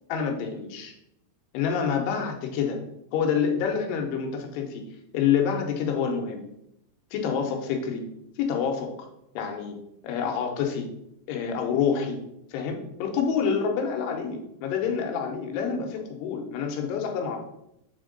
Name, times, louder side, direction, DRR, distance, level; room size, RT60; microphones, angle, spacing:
voice 1, 0.1-0.9 1.5-2.8 3.1-4.8 5.1-6.4 7.1-8.0 8.4-8.9 9.4-9.8 10.0-10.9 11.3-12.2 12.5-17.4, left 7 dB, 85° left, 3 dB, 2.9 m, -27 dB
7.3 x 3.6 x 3.9 m, 0.81 s
omnidirectional pair, 4.7 m